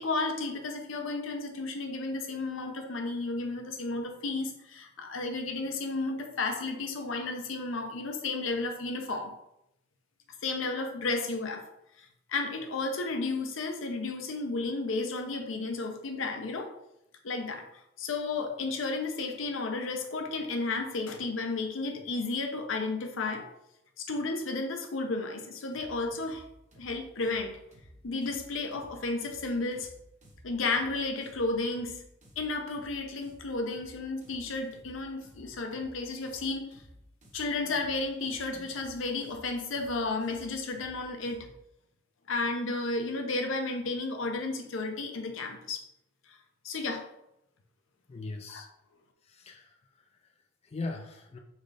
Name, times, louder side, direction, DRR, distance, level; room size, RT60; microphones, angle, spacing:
voice 1, 0.0-9.3 10.4-11.7 12.0-16.7 17.2-17.7 18.0-23.5 24.0-26.4 26.8-27.6 28.0-29.9 30.4-32.0 32.4-36.8 37.3-41.5 42.3-45.8 46.3-46.4 46.6-47.1 48.5-48.6, left 3 dB, 75° left, 5 dB, 0.7 m, -33 dB
sound 1, 25.7-41.6, equal, 40° right, 1.1 m, -55 dB
voice 2, 48.1-48.7 49.2-51.4, left 3 dB, 30° left, 4 dB, 0.4 m, -41 dB
4.2 x 3.6 x 3.3 m, 0.81 s
head